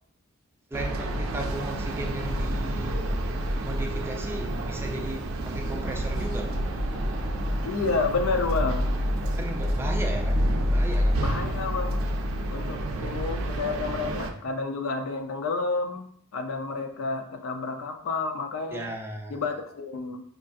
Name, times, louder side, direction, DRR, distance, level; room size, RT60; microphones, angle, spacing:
voice 1, 0.7-3.0 3.6-6.6 9.4-10.4 10.7-11.2 18.7-19.4, right 1 dB, 10° right, 2 dB, 0.3 m, -36 dB
sound 1, 0.7-14.3, equal, 80° right, 0.4 m, -28 dB
sound 2, 5.8-11.9, left 1 dB, 90° left, 1.1 m, -46 dB
voice 2, 7.6-8.9 11.2-12.0 12.5-16.1 16.3-18.9 19.3-20.2, left 4 dB, 75° left, 5 dB, 0.5 m, -30 dB
5.1 x 2.3 x 2.5 m, 0.64 s
head